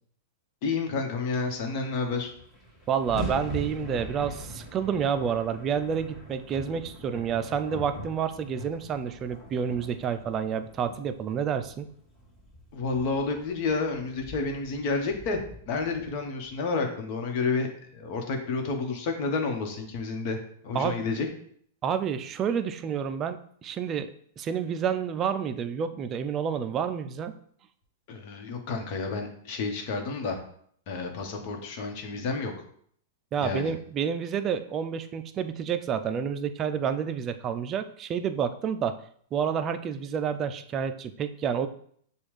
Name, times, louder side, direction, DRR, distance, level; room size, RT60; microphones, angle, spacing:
voice 1, 0.6-2.3 12.7-15.4 15.6-20.4 20.6-21.3 28.1-30.4 30.9-32.5 33.4-33.7, left 4 dB, 50° left, 3 dB, 1.1 m, -30 dB
sound 1, 1.9-2.0 2.2-16.5, equal, 15° left, 1.5 m, -42 dB
voice 2, 2.9-11.9 20.7-21.0 21.8-24.1 24.4-27.3 33.3-38.9 39.3-41.7, right 7 dB, 30° right, 9 dB, 0.4 m, -29 dB
6.9 x 2.4 x 3.2 m, 0.63 s
hypercardioid pair, 120°, 0 cm